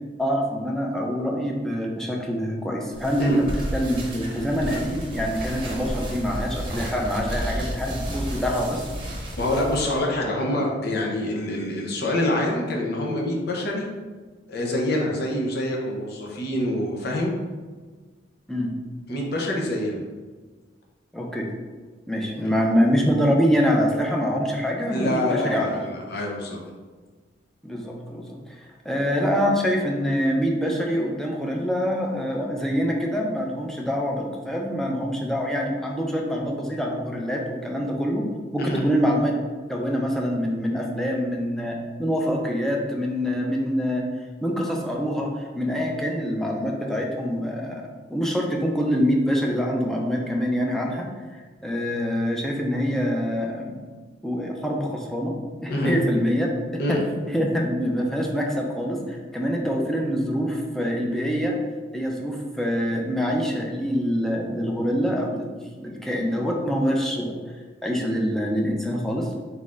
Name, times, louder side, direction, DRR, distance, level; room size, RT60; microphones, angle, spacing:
voice 1, 0.2-8.9 18.5-18.8 21.1-21.5 22.1-25.7 27.6-38.2 38.5-39.3 39.7-44.1 44.4-53.8 54.2-55.3 55.6-56.5 56.9-57.0 57.3-61.6 61.9-65.5 65.8-67.4 67.8-69.3, equal, ahead, -1 dB, 0.5 m, -25 dB
sound 1, 2.9-10.0, equal, 30° right, 0.8 m, -32 dB
voice 2, 9.4-13.9 14.5-17.3 19.1-20.0 22.3-22.5 24.9-26.6 38.6-38.8 55.7-56.0 56.8-57.0, left 1 dB, 60° left, -1 dB, 0.7 m, -26 dB
4.1 x 4.0 x 2.4 m, 1.4 s
head